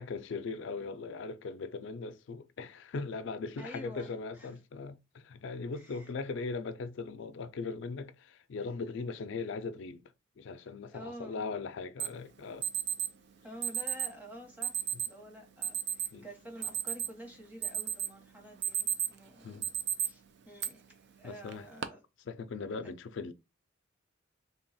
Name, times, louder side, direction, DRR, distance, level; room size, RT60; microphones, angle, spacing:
voice 1, 0.0-10.0 10.4-12.7 16.1-16.2 19.4-19.7 21.2-21.7 22.3-23.3, left 4 dB, 65° left, 0.4 m, -39 dB
voice 2, 3.6-4.5 5.7-6.1 10.9-11.5 13.4-19.6 20.0-22.0 22.8-22.9, equal, 10° right, 1.0 m, -49 dB
Alarm, 12.0-12.1 12.6-13.1 13.6-14.1 14.6-15.1 15.6-16.1 16.5-17.2 17.6-18.1 18.5-19.2 19.6-20.1 20.6-20.7 21.5-21.8, right 8 dB, 60° right, 0.4 m, -32 dB
3.3 x 2.3 x 4.0 m
head